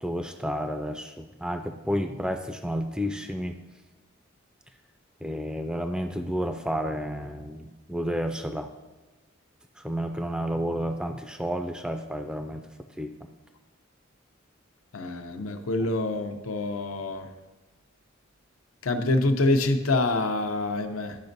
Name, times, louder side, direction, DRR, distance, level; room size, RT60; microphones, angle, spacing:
voice 1, 0.0-3.5 5.2-8.7 9.8-12.7 13.0-13.1, equal, 5° right, 6 dB, 0.3 m, -31 dB
voice 2, 14.9-17.3 18.8-21.2, left 2 dB, 85° left, 6 dB, 0.7 m, -26 dB
12.0 x 5.1 x 2.6 m, 1.2 s
head